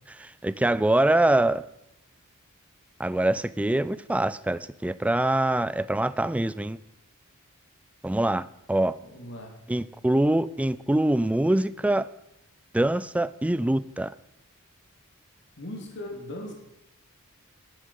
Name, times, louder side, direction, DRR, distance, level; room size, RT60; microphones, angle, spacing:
voice 1, 0.1-1.6 3.0-6.8 8.0-9.0 9.7-12.1 12.7-14.1, right 1 dB, 5° right, 0.3 m, -24 dB
voice 2, 9.0-9.5 15.6-16.5, left 1 dB, 55° left, 2.5 m, -38 dB
11.5 x 10.0 x 5.4 m
head